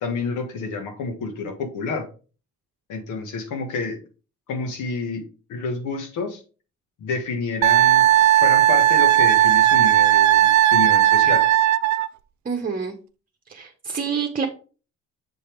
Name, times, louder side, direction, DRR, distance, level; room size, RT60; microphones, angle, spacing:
voice 1, 0.0-2.1 2.9-4.0 4.5-6.4 7.0-11.4, left 4 dB, 85° left, 4 dB, 1.6 m, -29 dB
Wind instrument woodwind instrument, 7.6-12.1, right 13 dB, 70° right, 0.5 m, -16 dB
voice 2, 12.4-12.9 13.5-14.5, right 6 dB, 30° right, 3 dB, 1.0 m, -27 dB
7.0 x 3.4 x 4.6 m, 0.37 s
cardioid pair, 90°, 30 cm